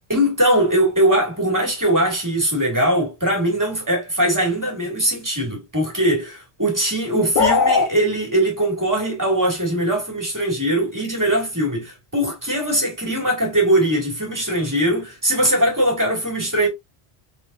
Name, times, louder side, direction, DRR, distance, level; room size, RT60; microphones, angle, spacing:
voice 1, 0.1-16.7, right 1 dB, 15° right, 2.1 m, -21 dB
sound 1, 7.4-7.9, left 5 dB, 55° left, 0.7 m, -17 dB
4.0 x 3.9 x 2.5 m
omnidirectional pair, 1.2 m